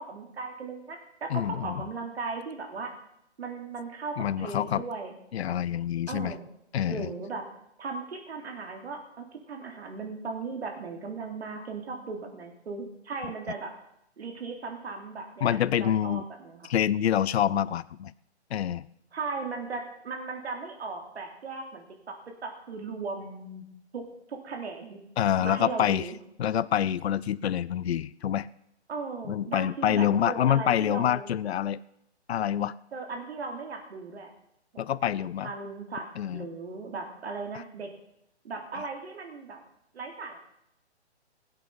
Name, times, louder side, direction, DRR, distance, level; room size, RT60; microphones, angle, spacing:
voice 1, 0.0-2.9 3.4-5.1 6.1-6.5 6.9-7.4 7.8-13.7 14.2-16.7 19.1-22.2 22.4-23.6 23.9-24.0 24.3-25.0 25.4-26.2 28.9-31.3 32.9-34.3 34.7-34.8 35.4-36.0 36.3-37.9 38.4-39.6 39.9-40.4, right 4 dB, 65° right, 3 dB, 3.2 m, -37 dB
voice 2, 1.3-1.8 4.2-4.8 5.3-6.3 6.7-7.1 15.4-16.2 16.7-18.1 18.5-18.9 25.2-26.0 26.4-28.5 29.3-31.8 32.3-32.7 34.8-35.5 36.2-36.5, left 10 dB, 65° left, 18 dB, 0.5 m, -26 dB
17.5 x 8.2 x 5.7 m, 0.79 s
hypercardioid pair, 155°, 35 cm